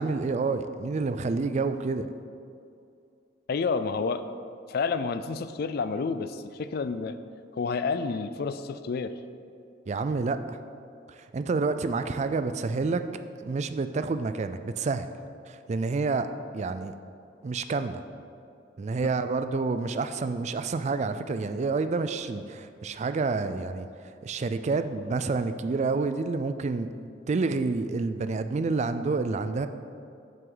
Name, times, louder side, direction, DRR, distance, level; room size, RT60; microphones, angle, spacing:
voice 1, 0.0-2.1 9.9-10.6 11.1-13.1 13.4-15.1 15.5-16.3 16.5-16.9 17.4-18.0 18.8-23.9 24.2-26.9 27.3-29.7, right 4 dB, 35° right, 10 dB, 0.3 m, -28 dB
voice 2, 3.5-4.2 4.7-7.2 7.5-9.1, left 4 dB, 55° left, 12 dB, 0.4 m, -29 dB
7.8 x 7.7 x 3.9 m, 2.4 s
head